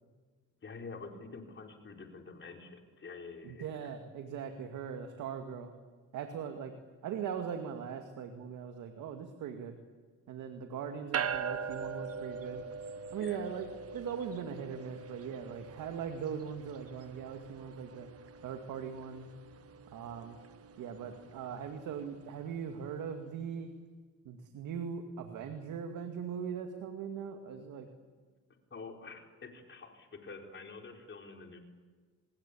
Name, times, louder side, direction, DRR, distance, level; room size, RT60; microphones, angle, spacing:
voice 1, 0.6-3.9 13.1-13.6 28.7-31.6, left 4 dB, 40° left, 2 dB, 4.6 m, -47 dB
voice 2, 3.4-5.7 6.1-6.7 7.0-9.8 10.3-12.6 13.1-13.7 13.9-18.1 18.4-19.3 19.9-20.4 20.8-23.7 24.3-27.9, right 7 dB, 85° right, 5 dB, 2.2 m, -40 dB
sound 1, 11.1-22.7, right 6 dB, 50° right, 1.6 m, -42 dB
27.5 x 21.0 x 8.6 m, 1.5 s
cardioid pair, 90°, 30 cm